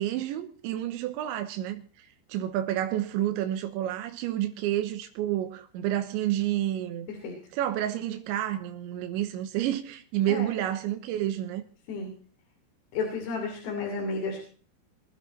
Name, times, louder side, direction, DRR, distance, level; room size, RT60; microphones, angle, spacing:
voice 1, 0.0-7.1 7.5-11.6, right 12 dB, 80° right, 3.3 m, -30 dB
voice 2, 12.9-14.4, left 4 dB, 65° left, 4.9 m, -32 dB
23.0 x 12.5 x 4.2 m
omnidirectional pair, 5.4 m